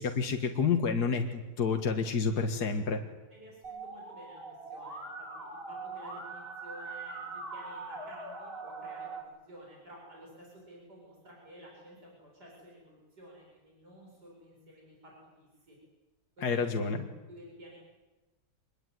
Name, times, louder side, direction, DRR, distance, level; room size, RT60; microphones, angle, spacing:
voice 1, 0.0-3.0 16.4-17.0, left 5 dB, 65° left, 4 dB, 2.2 m, -29 dB
voice 2, 3.3-5.1 5.4-15.1 15.4-15.8 16.4-16.9 17.3-17.8, right 1 dB, 70° right, -2 dB, 8.5 m, -52 dB
Musical instrument, 3.6-9.2, right 3 dB, 30° right, 5.4 m, -42 dB
26.5 x 22.0 x 9.4 m, 1.1 s
omnidirectional pair, 1.8 m